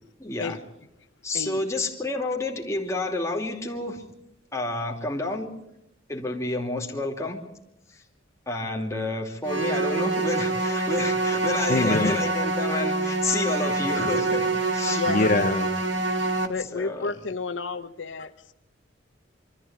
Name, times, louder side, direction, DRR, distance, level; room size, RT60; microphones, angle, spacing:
voice 1, 0.2-0.6 1.2-4.0 4.5-5.5 6.1-7.4 8.5-15.3 16.7-17.1, left 2 dB, 15° left, 2.8 m, -29 dB
sound 1, 9.4-16.5, right 3 dB, 75° right, 2.0 m, -26 dB
voice 2, 11.7-12.2 15.1-16.4, left 2 dB, 45° left, 0.8 m, -25 dB
voice 3, 14.9-15.3 16.5-18.5, left 4 dB, 75° left, 0.9 m, -31 dB
24.5 x 14.0 x 8.9 m
head